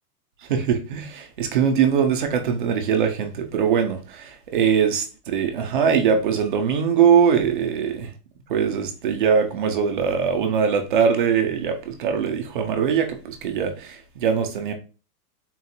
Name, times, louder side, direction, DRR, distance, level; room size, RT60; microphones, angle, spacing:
voice 1, 0.5-8.1 8.5-14.7, right 7 dB, 35° right, 0.5 m, -22 dB
3.9 x 2.4 x 4.2 m
supercardioid pair, 175°, 46 cm